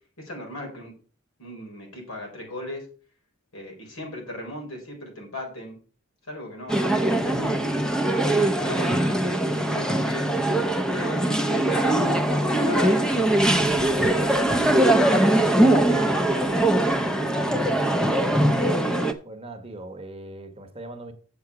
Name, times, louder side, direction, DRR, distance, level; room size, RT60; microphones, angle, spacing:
voice 1, 0.2-0.9 1.4-2.8 3.5-5.8 6.3-7.0 8.1-9.0 9.7-10.3 10.9-14.7 15.6-16.0 16.3-16.6, left 1 dB, 85° left, 4.1 m, -37 dB
sound 1, 6.7-19.1, right 1 dB, 5° left, 0.7 m, -21 dB
voice 2, 15.5-16.2 17.5-17.7 19.2-21.1, right 2 dB, 30° right, 1.1 m, -40 dB
7.7 x 7.0 x 4.7 m
head